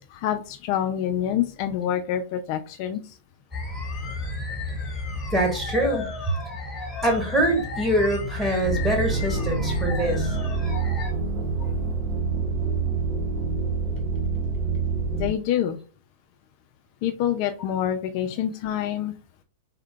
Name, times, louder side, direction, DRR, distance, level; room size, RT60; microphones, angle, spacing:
voice 1, 0.0-3.0 15.1-15.8 17.0-19.1, left 10 dB, 50° left, 7 dB, 0.4 m, -26 dB
sound 1, 3.5-11.1, left 3 dB, 15° left, 1.2 m, -33 dB
voice 2, 5.3-6.1 7.0-10.3, right 1 dB, 10° right, 0 dB, 1.4 m, -24 dB
sound 2, 8.6-15.3, right 4 dB, 40° right, 0.8 m, -26 dB
3.6 x 2.2 x 3.7 m, 0.37 s
hypercardioid pair, 110°, 0 cm